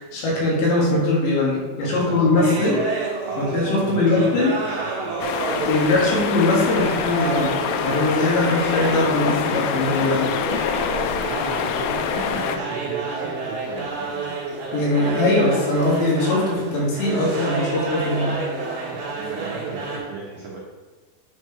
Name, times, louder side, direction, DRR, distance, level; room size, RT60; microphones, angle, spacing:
voice 1, 0.0-2.8 3.4-4.5 5.6-10.3 14.7-18.4, left 2 dB, 65° left, -4 dB, 3.9 m, -21 dB
voice 2, 1.9-2.9 3.3-5.7 11.1-14.3 18.9-20.6, right 4 dB, 80° right, -5 dB, 2.0 m, -34 dB
sound 1, 2.3-20.0, right 4 dB, 55° right, 2.7 m, -30 dB
sound 2, 5.2-12.6, left 7 dB, 85° left, 2.9 m, -25 dB
9.6 x 4.6 x 4.6 m, 1.4 s
omnidirectional pair, 5.8 m